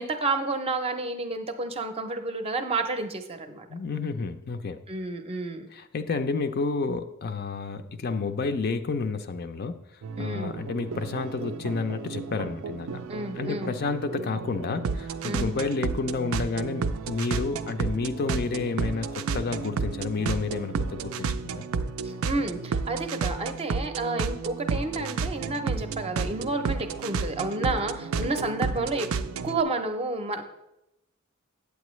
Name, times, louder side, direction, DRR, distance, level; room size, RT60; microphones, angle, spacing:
voice 1, 0.0-3.7 4.9-5.7 10.2-10.5 13.1-13.7 15.2-15.5 22.0-29.1 29.4-30.4, right 2 dB, 30° right, 7 dB, 0.6 m, -30 dB
voice 2, 3.7-4.8 5.7-9.9 10.2-13.0 13.4-21.7 28.2-28.4, left 4 dB, 45° left, 9 dB, 0.4 m, -30 dB
sound 1, 10.0-29.6, right 5 dB, 70° right, 0.4 m, -32 dB
8.4 x 8.2 x 3.1 m, 0.89 s
head